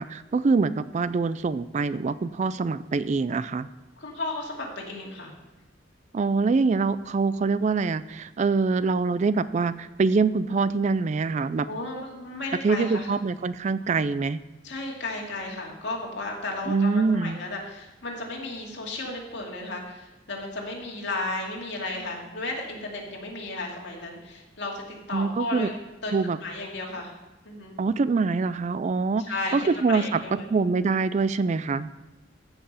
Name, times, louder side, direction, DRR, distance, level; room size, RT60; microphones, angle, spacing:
voice 1, 0.0-3.7 6.1-11.7 12.6-14.4 16.7-17.4 25.1-25.7 26.1-26.4 27.8-29.3 29.5-30.2 30.5-31.9, right 4 dB, 40° right, 15 dB, 0.3 m, -24 dB
voice 2, 4.0-5.3 11.6-13.1 14.6-25.7 26.0-26.1 26.4-27.1 27.4-27.8 29.2-30.5, left 2 dB, 65° left, -1 dB, 2.4 m, -34 dB
15.0 x 5.8 x 5.6 m, 1.1 s
head